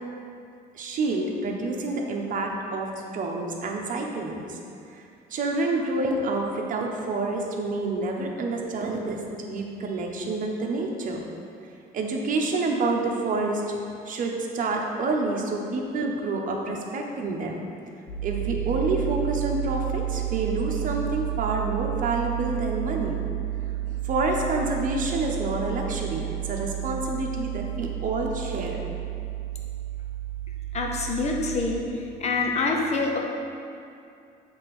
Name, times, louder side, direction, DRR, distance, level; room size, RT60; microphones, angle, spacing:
voice 1, 0.7-4.6 4.9-5.0 5.3-11.3 11.9-13.6 14.0-17.6 18.2-23.2 24.0-28.8, right 2 dB, 50° right, 0 dB, 1.1 m, -28 dB
sound 1, 18.1-31.7, right 14 dB, 85° left, 1.2 m, -31 dB
voice 2, 30.7-33.2, left 3 dB, 40° left, 1 dB, 1.0 m, -26 dB
7.4 x 3.5 x 6.1 m, 2.5 s
cardioid pair, 110°, 17 cm